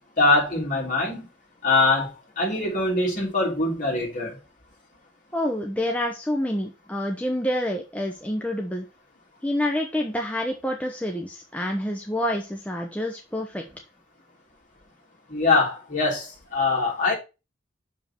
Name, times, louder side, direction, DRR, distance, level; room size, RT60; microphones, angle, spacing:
voice 1, 0.2-1.3 1.6-2.1 2.4-4.4 15.3-17.1, left 3 dB, 45° left, 3.2 m, -23 dB
voice 2, 5.3-8.9 9.4-13.6, left 1 dB, 10° left, 0.8 m, -27 dB
6.4 x 5.3 x 4.4 m
head